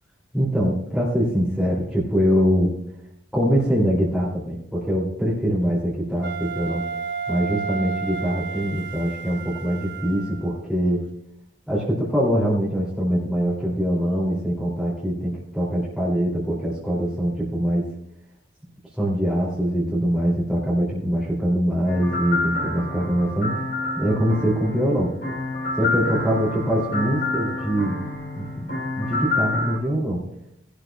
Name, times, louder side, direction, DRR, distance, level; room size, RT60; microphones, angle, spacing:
voice 1, 0.3-2.7 3.3-6.8 7.3-11.0 11.7-17.9 19.0-23.6 24.0-25.1 25.8-28.0 28.3-30.3, equal, ahead, -8 dB, 2.6 m, -23 dB
Wind instrument woodwind instrument, 6.2-10.5, right 6 dB, 70° right, 1.1 m, -32 dB
sound 1, 21.9-29.8, left 2 dB, 55° left, 3.1 m, -28 dB
18.5 x 11.5 x 2.2 m, 0.77 s
head